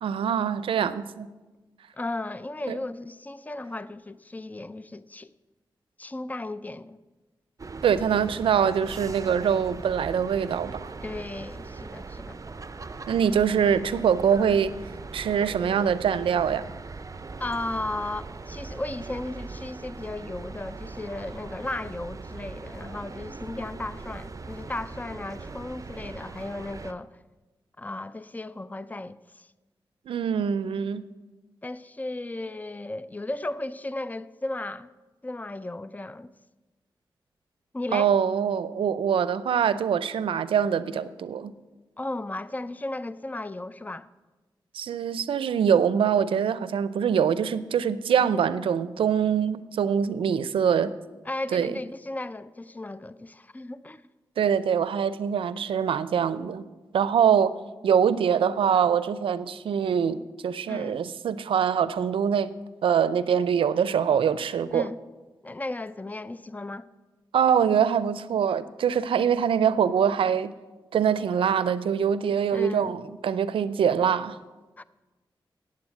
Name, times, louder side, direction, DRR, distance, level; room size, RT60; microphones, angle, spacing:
voice 1, 0.0-1.3 2.7-2.8 7.8-10.9 13.1-14.7 15.1-16.6 30.1-31.1 37.9-41.5 44.7-50.9 51.5-51.7 54.4-56.6 56.9-57.5 57.8-62.5 62.8-64.9 67.3-70.5 70.9-74.4, right 7 dB, 90° right, 0.4 m, -24 dB
voice 2, 1.9-5.3 6.0-7.0 11.0-12.4 17.4-27.1 27.8-29.5 31.6-34.9 35.2-36.3 37.7-38.1 42.0-44.1 51.3-54.0 60.7-61.1 64.7-65.0 65.4-66.9 72.5-72.9 74.8-74.9, left 2 dB, 20° left, 0.5 m, -35 dB
sound 1, 7.6-26.9, right 4 dB, 40° right, 0.6 m, -40 dB
8.8 x 7.6 x 8.4 m
cardioid pair, 45°, 9 cm